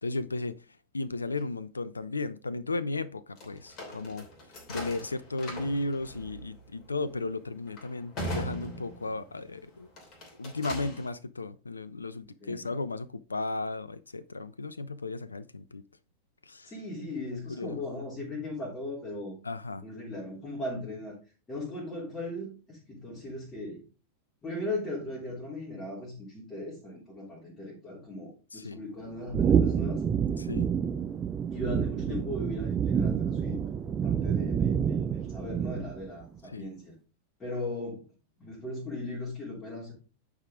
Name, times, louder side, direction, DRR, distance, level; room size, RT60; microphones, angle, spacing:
voice 1, 0.0-0.6 0.9-4.3 4.7-9.9 10.4-15.8 16.4-16.7 17.2-17.8 19.4-19.8 28.5-28.8 30.4-30.7 36.5-36.7, left 3 dB, 80° left, 0.4 m, -35 dB
sound 1, 3.4-9.4 9.9-11.1, equal, 35° left, 2.9 m, -40 dB
voice 2, 16.6-19.3 19.8-21.1 21.5-23.8 24.4-30.0 31.5-33.6 33.8-36.9 37.4-38.0 38.4-39.9, left 2 dB, 20° left, 3.1 m, -38 dB
sound 2, 29.3-36.1, right 7 dB, 25° right, 0.7 m, -28 dB
9.6 x 4.9 x 3.5 m
figure-of-eight pair, 90°, 0 cm